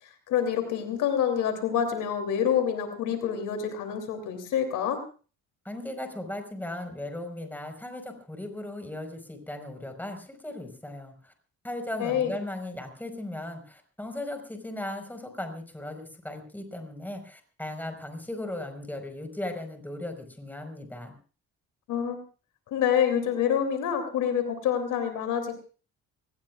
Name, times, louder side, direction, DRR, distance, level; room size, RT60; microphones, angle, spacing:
voice 1, 0.3-5.0 12.0-12.3 21.9-22.2 22.7-25.5, left 8 dB, 85° left, 7 dB, 3.1 m, -27 dB
voice 2, 5.6-11.3 11.6-21.2, left 1 dB, 5° left, 5 dB, 4.9 m, -37 dB
25.0 x 19.0 x 2.4 m, 0.38 s
cardioid pair, 90°, 30 cm